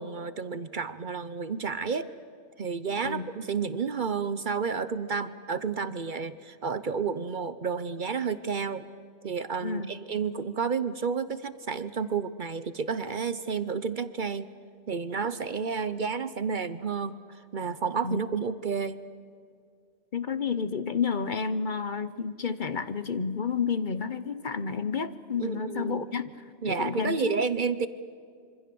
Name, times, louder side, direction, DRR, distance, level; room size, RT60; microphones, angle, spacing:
voice 1, 0.0-2.1 2.6-8.8 9.2-14.5 14.9-17.2 17.5-19.0 25.4-26.0 26.6-27.9, right 5 dB, 50° right, 13 dB, 0.9 m, -31 dB
voice 2, 9.6-9.9 18.0-18.2 20.1-26.2 26.6-27.4, left 5 dB, 50° left, 12 dB, 0.9 m, -30 dB
26.0 x 24.5 x 7.0 m, 2.2 s
omnidirectional pair, 1.2 m